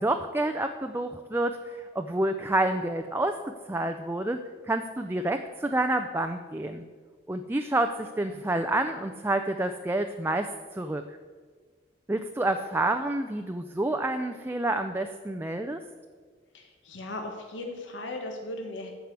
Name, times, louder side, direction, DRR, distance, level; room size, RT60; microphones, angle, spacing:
voice 1, 0.0-3.4 3.7-4.4 4.7-6.8 7.3-11.2 12.1-15.8, right 1 dB, 10° right, 6 dB, 0.4 m, -28 dB
voice 2, 16.5-18.9, left 2 dB, 75° left, 2 dB, 1.4 m, -37 dB
14.0 x 4.9 x 8.2 m, 1.5 s
head